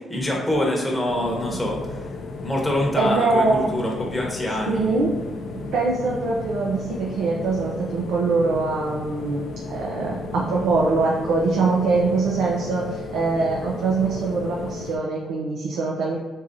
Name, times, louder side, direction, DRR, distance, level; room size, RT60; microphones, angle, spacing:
voice 1, 0.1-2.1 2.4-5.0, left 1 dB, 15° left, -2 dB, 0.9 m, -25 dB
sound 1, 1.0-15.0, left 3 dB, 80° left, 0.4 m, -34 dB
voice 2, 3.0-3.7 4.7-5.1 5.5-16.2, right 3 dB, 85° right, -3 dB, 0.4 m, -23 dB
3.7 x 2.9 x 2.6 m, 1.3 s
supercardioid pair, 60°, 0 cm